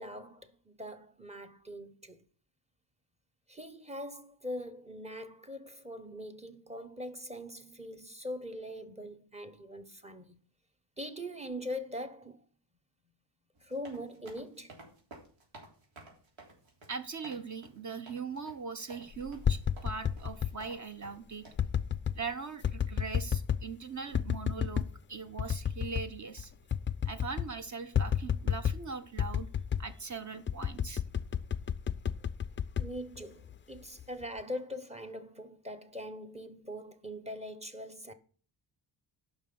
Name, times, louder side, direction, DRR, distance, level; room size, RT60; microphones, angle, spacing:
voice 1, 0.0-2.2 3.5-10.4 11.0-12.4 13.6-14.7 32.8-38.1, equal, 15° right, 1.0 m, -42 dB
sound 1, 13.6-21.5, right 2 dB, 90° right, 3.4 m, -53 dB
voice 2, 16.9-21.4 22.1-26.5 27.0-29.5 29.8-31.0, right 5 dB, 40° right, 1.0 m, -40 dB
sound 2, 19.2-20.6 21.6-22.2 22.6-23.7 24.1-24.9 25.4-26.1 26.4-26.5 26.7-27.5 27.9-28.9 29.2-29.9 30.5-33.6 34.0-34.4, left 8 dB, 30° left, 0.4 m, -31 dB
9.4 x 6.0 x 6.9 m
wide cardioid pair, 145°, 46 cm